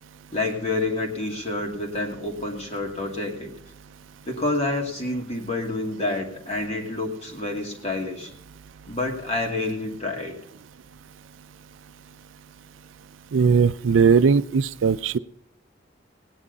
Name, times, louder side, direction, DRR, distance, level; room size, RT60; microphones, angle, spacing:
voice 1, 0.3-3.5 4.3-8.3 8.9-10.3, left 2 dB, 35° left, 1 dB, 2.5 m, -28 dB
voice 2, 13.3-15.2, right 5 dB, 85° right, 14 dB, 0.4 m, -19 dB
17.5 x 9.9 x 4.1 m, 0.70 s
head